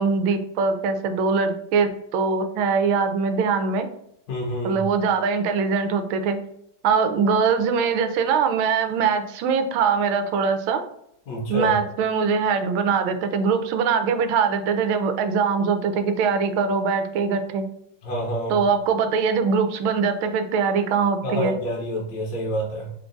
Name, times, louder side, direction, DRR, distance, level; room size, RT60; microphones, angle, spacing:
voice 1, 0.0-3.9 4.6-6.4 6.8-10.8 11.5-17.6 18.5-21.6, right 5 dB, 85° right, 8 dB, 1.4 m, -22 dB
voice 2, 4.3-4.9 11.3-11.8 18.0-18.6 21.2-22.9, equal, 55° left, -3 dB, 1.2 m, -28 dB
3.8 x 2.3 x 3.7 m, 0.74 s
omnidirectional pair, 2.2 m